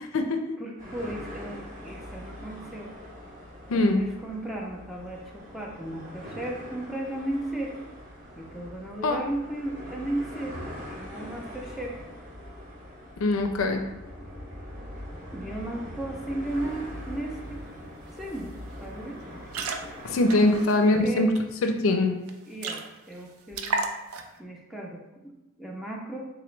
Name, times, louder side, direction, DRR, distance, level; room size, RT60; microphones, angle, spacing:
voice 1, 0.6-2.9 3.7-7.7 8.4-10.6 10.9-12.0 15.3-17.6 18.1-19.5 20.8-21.3 22.5-23.8 24.4-25.3 25.6-26.2, right 1 dB, ahead, -2 dB, 0.4 m, -35 dB
sound 1, 0.8-20.6, equal, 40° right, 1.0 m, -42 dB
voice 2, 3.7-4.0 9.0-9.2 13.2-13.8 20.0-21.3 21.6-22.1, left 2 dB, 65° left, 5 dB, 0.4 m, -22 dB
sound 2, 17.7-17.8 18.1-18.4 18.7-18.9 19.3-21.4 21.8-21.9 22.2-22.3 22.6-23.2 23.5-24.4, right 4 dB, 75° right, 0.4 m, -33 dB
3.7 x 2.9 x 3.2 m, 1.0 s
head